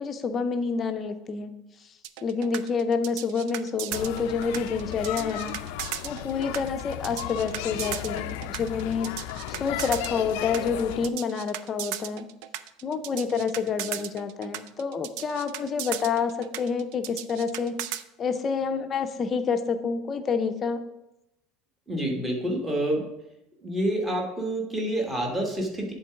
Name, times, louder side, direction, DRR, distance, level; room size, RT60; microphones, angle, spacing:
voice 1, 0.0-1.5 2.2-5.6 6.0-9.2 9.5-12.3 12.8-20.8, left 5 dB, 25° left, 8 dB, 0.5 m, -28 dB
sound 1, 2.0-18.0, right 12 dB, 65° right, 0.4 m, -36 dB
sound 2, 3.9-11.1, left 12 dB, 75° left, 0.4 m, -35 dB
voice 2, 21.9-23.1 23.6-25.9, right 1 dB, 10° right, 0 dB, 1.2 m, -28 dB
8.2 x 3.8 x 5.7 m, 0.89 s
cardioid pair, 175°, 0 cm